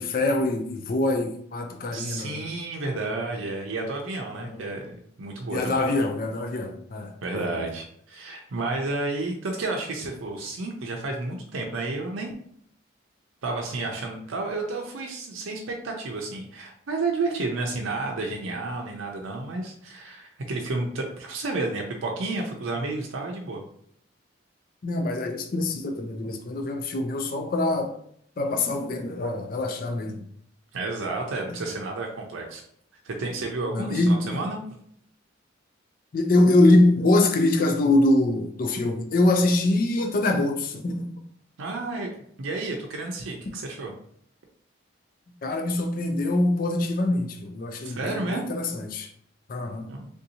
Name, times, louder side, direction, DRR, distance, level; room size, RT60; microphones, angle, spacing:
voice 1, 0.0-2.4 4.3-4.6 5.5-7.7 24.8-27.9 28.4-30.2 31.5-31.6 33.7-34.4 36.1-41.1 45.4-49.1 49.5-49.9, left 2 dB, 45° left, 0.4 m, -24 dB
voice 2, 1.9-5.8 7.2-12.4 13.4-23.6 30.7-32.6 33.0-34.6 41.6-42.1 42.4-43.9 47.8-48.5 49.9-50.1, right 3 dB, 80° right, 0.5 m, -31 dB
3.5 x 2.7 x 2.7 m
head